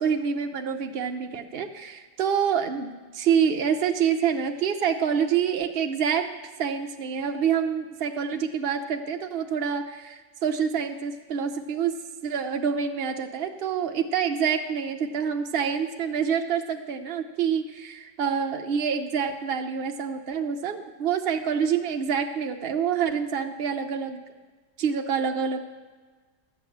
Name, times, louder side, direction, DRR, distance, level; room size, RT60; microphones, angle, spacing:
voice 1, 0.0-6.3 6.6-12.0 12.2-24.2 24.8-25.6, right 7 dB, 80° right, 5 dB, 0.5 m, -27 dB
12.0 x 6.0 x 8.4 m, 1.4 s
omnidirectional pair, 2.0 m